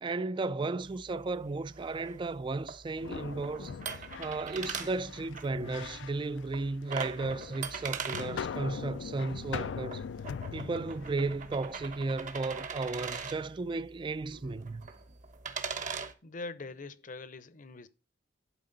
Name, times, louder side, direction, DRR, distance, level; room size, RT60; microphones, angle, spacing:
voice 1, 0.0-3.7 4.2-10.0 10.5-14.8, right 3 dB, 25° right, 0.3 m, -34 dB
sound 1, 0.8-16.1, right 5 dB, 45° right, 1.0 m, -42 dB
sound 2, 3.0-13.3, left 6 dB, 75° left, 0.4 m, -42 dB
sound 3, 13.8-15.8, right 1 dB, 75° right, 1.6 m, -61 dB
voice 2, 16.2-17.9, left 3 dB, 45° left, 0.7 m, -43 dB
11.0 x 4.8 x 3.9 m
head